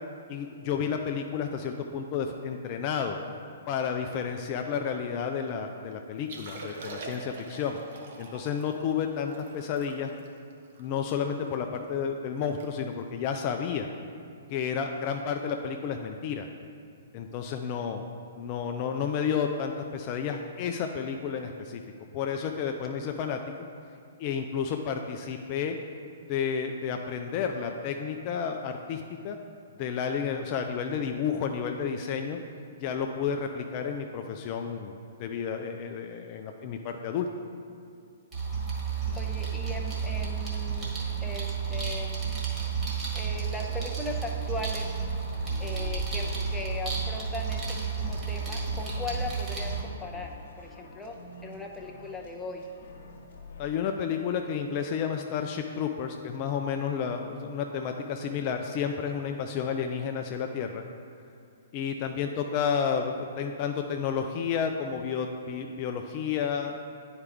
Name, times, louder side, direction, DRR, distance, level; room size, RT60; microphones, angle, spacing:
voice 1, 0.3-3.2 3.7-7.8 8.2-10.1 10.8-13.9 14.5-16.5 17.1-18.1 18.3-21.8 22.1-23.4 24.2-25.8 26.3-29.4 29.8-32.4 32.8-37.3 53.6-60.8 61.7-66.8, left 7 dB, 40° left, 4 dB, 0.4 m, -31 dB
Liquid, 6.2-11.5 12.0-12.1 12.4-12.7 12.9-13.2 13.8-14.0 15.5-15.6, right 3 dB, 55° right, 1.0 m, -44 dB
sound 1, 38.3-49.8, right 6 dB, 25° right, 1.8 m, -31 dB
sound 2, 38.9-53.7, left 2 dB, 60° left, 1.2 m, -48 dB
voice 2, 39.1-42.3 43.1-45.0 45.6-52.7, left 2 dB, 5° left, -1 dB, 0.7 m, -38 dB
9.6 x 4.8 x 3.4 m, 2.4 s
hypercardioid pair, 125°, 0 cm